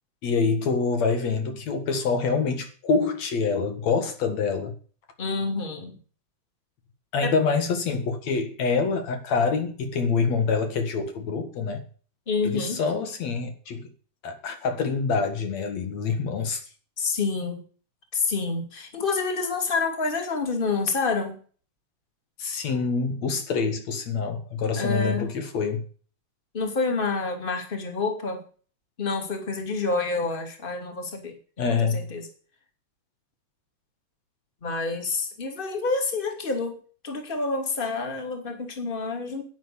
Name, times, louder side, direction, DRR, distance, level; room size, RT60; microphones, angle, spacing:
voice 1, 0.2-4.7 7.1-11.8 12.4-13.9 14.2-16.6 22.4-25.8 31.6-32.1, left 5 dB, 70° left, 2.9 m, -26 dB
voice 2, 5.2-6.0 7.2-7.3 12.3-12.8 17.0-17.6 18.1-21.3 24.8-25.3 26.5-28.4 29.0-32.3 34.6-39.4, left 4 dB, 20° left, 2.6 m, -28 dB
11.5 x 9.7 x 7.0 m
omnidirectional pair, 3.3 m